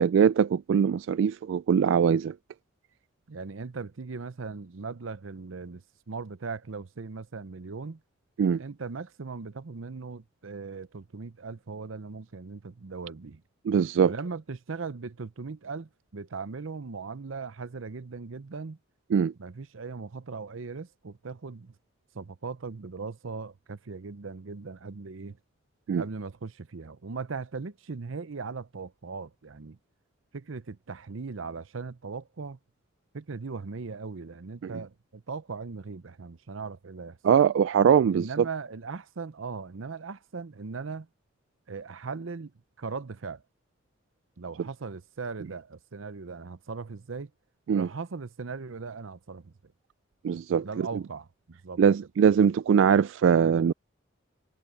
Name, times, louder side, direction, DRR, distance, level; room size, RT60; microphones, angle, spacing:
voice 1, 0.0-2.3 8.4-8.6 13.7-14.1 19.1-19.3 25.9-26.0 34.6-34.7 37.2-38.3 47.7-47.9 50.2-50.9 51.8-53.7, right 7 dB, 70° right, 0.3 m, -22 dB
voice 2, 3.3-8.0 8.6-13.4 14.0-18.8 19.4-21.7 22.1-25.4 26.0-29.8 30.3-32.6 33.1-37.2 38.1-41.1 41.7-42.5 42.8-43.4 44.4-47.3 47.7-49.7 50.6-51.8, right 4 dB, 90° right, 0.7 m, -39 dB
head